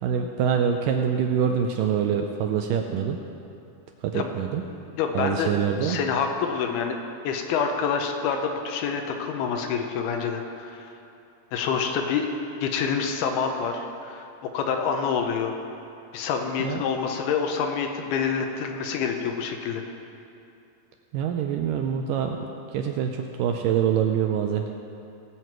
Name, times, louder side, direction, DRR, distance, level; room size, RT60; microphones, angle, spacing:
voice 1, 0.0-3.2 4.0-4.6 5.1-6.0 16.6-16.8 21.1-24.7, right 8 dB, 80° right, 4 dB, 1.9 m, -25 dB
voice 2, 4.7-5.5 5.8-7.0 7.2-10.9 11.5-12.3 12.6-14.3 14.5-15.5 16.1-19.8, left 6 dB, 85° left, 4 dB, 2.7 m, -27 dB
18.5 x 7.7 x 4.6 m, 2.6 s
omnidirectional pair, 4.4 m